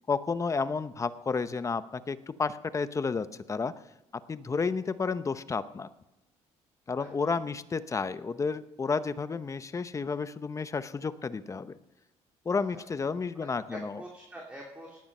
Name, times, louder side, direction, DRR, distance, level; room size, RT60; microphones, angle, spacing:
voice 1, 0.1-3.7 4.3-5.9 6.9-11.7 12.4-14.0, left 4 dB, 25° left, 13 dB, 0.8 m, -31 dB
voice 2, 12.5-12.8 13.3-15.0, right 1 dB, 10° right, -1 dB, 3.0 m, -45 dB
18.0 x 9.9 x 5.5 m, 0.96 s
cardioid pair, 100°, 12 cm